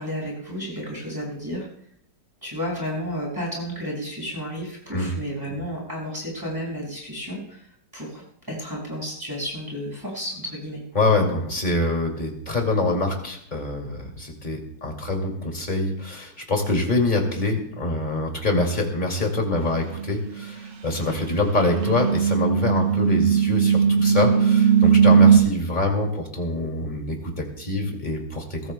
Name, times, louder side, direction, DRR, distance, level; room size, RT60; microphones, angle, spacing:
voice 1, 0.0-1.7 2.4-8.2 8.5-10.8, equal, 10° right, -5 dB, 5.6 m, -32 dB
voice 2, 10.9-28.7, left 2 dB, 25° left, 1 dB, 2.5 m, -25 dB
sound 1, 20.0-20.2 21.1-25.4, right 7 dB, 70° right, 1.6 m, -18 dB
22.5 x 16.0 x 2.2 m, 0.71 s
omnidirectional pair, 2.0 m